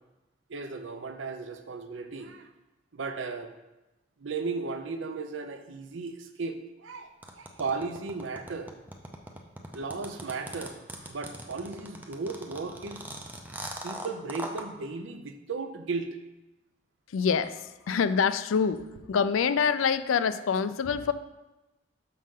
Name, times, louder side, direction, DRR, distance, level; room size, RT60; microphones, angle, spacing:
voice 1, 0.5-2.5 2.9-3.5 4.2-7.1 7.4-8.7 9.7-13.0 13.8-16.1, right 4 dB, 75° right, 7 dB, 0.6 m, -35 dB
sound 1, 7.2-14.6, right 1 dB, 10° right, 0.5 m, -40 dB
voice 2, 17.1-18.8 19.1-21.1, left 6 dB, 90° left, 12 dB, 0.4 m, -26 dB
6.3 x 5.7 x 3.7 m, 1.0 s
head